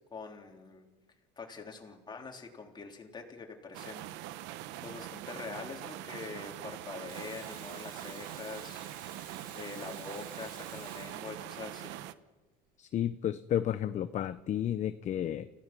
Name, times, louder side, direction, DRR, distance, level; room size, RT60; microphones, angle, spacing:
voice 1, 0.1-0.9 1.4-4.3 4.8-8.9 9.5-12.0, left 4 dB, 25° left, 2 dB, 3.5 m, -44 dB
sound 1, 3.7-12.1, right 14 dB, 85° right, 1.0 m, -43 dB
Water tap faucet / Sink (filling or washing), 7.1-11.8 14.3-14.4, right 5 dB, 55° right, 6.8 m, -52 dB
voice 2, 12.8-15.5, left 10 dB, 40° left, 12 dB, 0.7 m, -32 dB
30.0 x 16.5 x 6.1 m, 1.2 s
cardioid pair, 130°, 18 cm